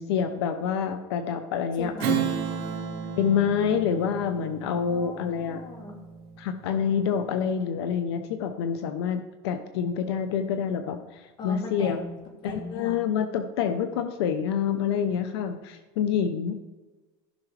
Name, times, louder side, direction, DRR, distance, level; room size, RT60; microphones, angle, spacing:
voice 1, 0.0-2.2 3.2-5.6 6.4-12.0 12.4-16.6, left 7 dB, 85° left, 8 dB, 0.8 m, -27 dB
voice 2, 1.8-2.3 4.9-6.0 11.4-12.2 12.4-13.0, left 2 dB, 35° left, 2 dB, 2.2 m, -38 dB
Strum, 2.0-6.9, right 8 dB, 60° right, 2.4 m, -33 dB
14.5 x 6.1 x 3.3 m, 1.2 s
supercardioid pair, 130°, 13 cm